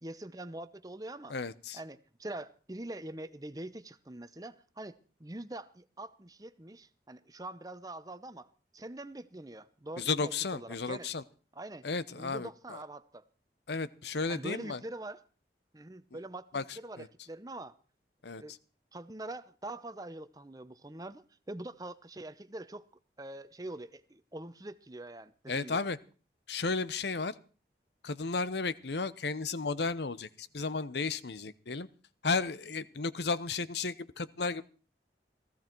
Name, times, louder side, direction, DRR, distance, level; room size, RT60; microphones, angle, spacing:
voice 1, 0.0-1.3 1.7-8.5 8.7-11.1 11.5-11.8 12.1-13.2 14.3-15.2 15.7-17.8 18.4-18.5 18.9-22.8 23.2-25.9, right 1 dB, 20° right, 0.7 m, -44 dB
voice 2, 1.3-1.8 10.0-11.2 11.8-12.8 13.7-14.8 16.5-17.1 18.2-18.4 25.5-26.0 26.5-27.3 28.0-31.9 32.2-34.6, left 4 dB, 75° left, 0.9 m, -33 dB
17.0 x 15.0 x 4.6 m
head